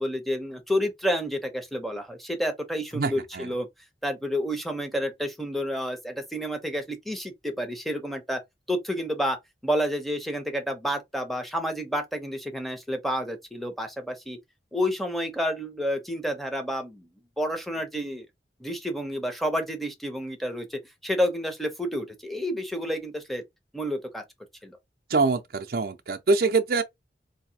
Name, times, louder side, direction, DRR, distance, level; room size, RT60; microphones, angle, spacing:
voice 1, 0.0-3.7 4.0-8.4 8.7-9.4 9.6-14.4 14.7-17.1 17.4-18.3 18.6-23.4 23.7-24.2 24.6-24.8, equal, ahead, 0.8 m, -29 dB
voice 2, 2.9-3.5 25.1-26.8, right 4 dB, 55° right, 0.5 m, -24 dB
4.0 x 2.7 x 2.8 m
head